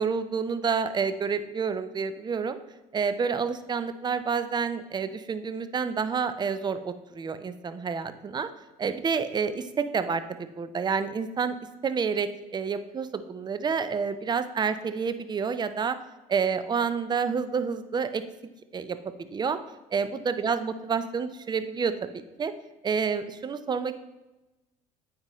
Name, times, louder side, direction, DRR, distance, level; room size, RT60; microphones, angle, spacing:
voice 1, 0.0-2.6 2.9-8.5 8.8-11.6 11.8-16.0 16.3-18.2 18.7-19.6 19.9-22.1 22.4-22.5 22.8-23.9, right 6 dB, 25° right, 12 dB, 0.5 m, -29 dB
8.8 x 5.2 x 3.1 m, 1.0 s
hypercardioid pair, 65°, 19 cm